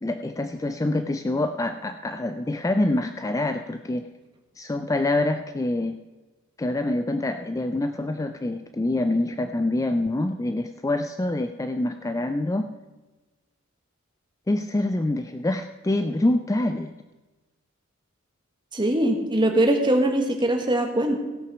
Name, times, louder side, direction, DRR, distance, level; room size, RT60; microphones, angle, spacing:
voice 1, 0.0-4.1 4.6-6.0 6.6-12.7 14.5-16.9, left 2 dB, 15° left, 8 dB, 0.3 m, -26 dB
voice 2, 18.7-21.2, right 1 dB, 20° right, 3 dB, 1.4 m, -22 dB
16.5 x 6.2 x 6.1 m, 1.2 s
head